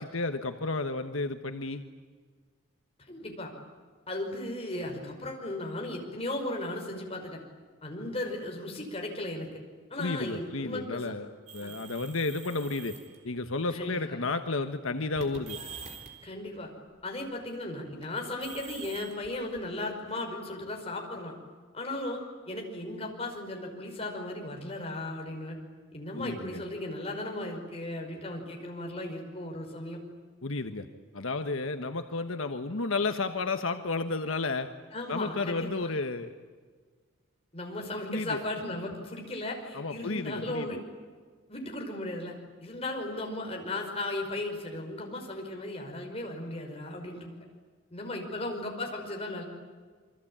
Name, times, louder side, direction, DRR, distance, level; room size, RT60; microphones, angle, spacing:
voice 1, 0.0-1.8 10.0-11.3 11.5-13.0 13.2-15.6 26.2-26.6 30.4-30.9 31.1-34.7 35.1-36.3 38.1-38.4 39.7-40.8, left 3 dB, 80° left, 8 dB, 1.3 m, -32 dB
voice 2, 3.1-3.5 4.1-7.4 7.8-9.5 9.9-11.1 11.6-11.7 13.7-14.2 16.2-16.7 17.0-21.3 21.7-22.2 22.5-25.6 25.9-30.0 34.9-35.9 37.5-40.8 41.5-42.4 42.6-47.4 47.9-49.4, left 1 dB, 30° left, 1 dB, 5.3 m, -36 dB
sound 1, 11.5-13.2 14.1-14.4 15.2-16.3 18.0-20.1, right 5 dB, 35° right, 3.8 m, -45 dB
28.0 x 23.5 x 8.8 m, 1.5 s
head